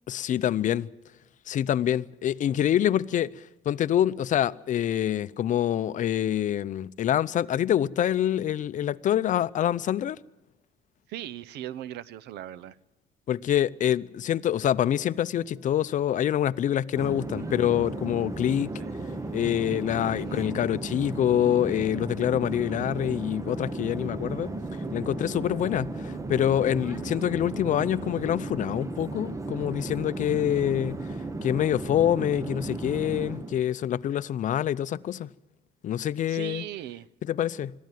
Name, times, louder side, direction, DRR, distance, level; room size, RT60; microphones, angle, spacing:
voice 1, 0.1-0.9 1.5-3.3 3.7-10.2 13.3-18.7 19.3-24.5 24.9-31.0 31.4-35.3 35.8-36.6 37.2-37.7, left 11 dB, 50° left, 0.6 m, -26 dB
voice 2, 11.1-12.7 17.4-17.6 18.8-18.9 20.1-20.5 36.3-37.1, right 12 dB, 80° right, 0.7 m, -39 dB
sound 1, 14.5-28.5, equal, 45° right, 7.0 m, -52 dB
Conversation / Chatter / Fixed-wing aircraft airplane, 16.9-33.6, right 2 dB, 20° right, 1.0 m, -35 dB
22.0 x 14.0 x 9.2 m
cardioid pair, 110°, 17 cm